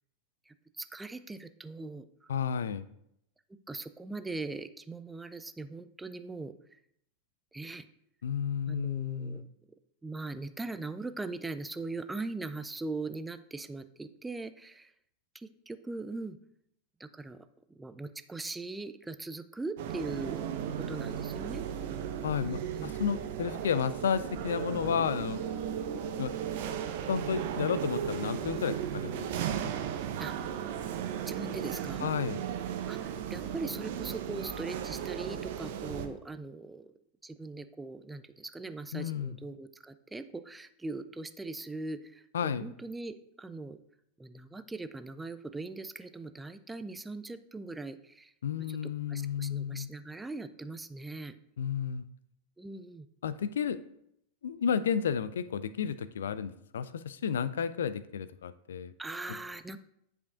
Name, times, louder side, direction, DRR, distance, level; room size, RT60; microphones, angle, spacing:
voice 1, 0.5-2.3 3.5-6.8 7.5-7.8 8.7-9.5 10.0-14.9 15.3-16.4 17.0-17.4 17.8-20.4 20.8-21.6 22.4-22.9 30.2-30.3 31.2-32.1 32.9-36.9 37.2-43.8 44.2-48.3 48.6-48.8 49.1-51.3 52.6-53.1 59.0-59.8, right 3 dB, 10° right, 12 dB, 0.4 m, -40 dB
voice 2, 2.3-2.8 8.2-9.4 22.2-25.4 26.2-26.4 27.1-29.3 29.6-29.8 32.0-32.4 38.9-39.4 42.3-42.7 48.4-49.9 51.6-52.1 53.2-53.8 54.4-58.9, left 7 dB, 65° left, 15 dB, 0.3 m, -32 dB
sound 1, 19.8-36.1, right 9 dB, 50° right, 0.6 m, -36 dB
10.5 x 5.0 x 2.5 m, 0.76 s
figure-of-eight pair, 90°, 0 cm